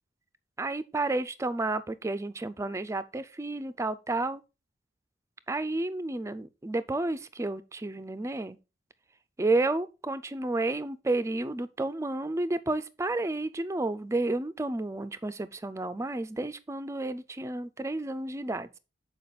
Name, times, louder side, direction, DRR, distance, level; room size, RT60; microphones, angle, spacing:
voice 1, 0.6-4.4 5.5-8.6 9.4-18.8, right 2 dB, 15° right, 0.4 m, -31 dB
6.9 x 4.7 x 3.9 m
head